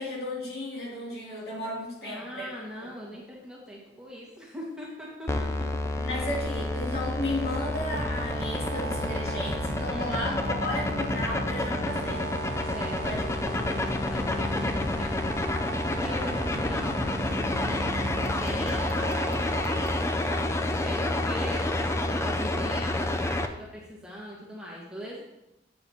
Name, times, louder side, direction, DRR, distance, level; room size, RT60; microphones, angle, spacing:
voice 1, 0.0-2.5 6.0-12.3 13.0-13.2, left 1 dB, 60° left, -4 dB, 2.7 m, -34 dB
voice 2, 2.0-5.7 9.8-10.3 12.6-15.1 15.9-25.2, equal, 5° right, -5 dB, 1.6 m, -42 dB
sound 1, 5.3-23.5, left 2 dB, 15° left, 0.4 m, -29 dB
sound 2, 7.5-20.6, right 1 dB, 65° right, 0.9 m, -36 dB
sound 3, 11.9-21.9, left 1 dB, 85° left, 2.8 m, -52 dB
9.4 x 7.8 x 2.9 m, 0.91 s
head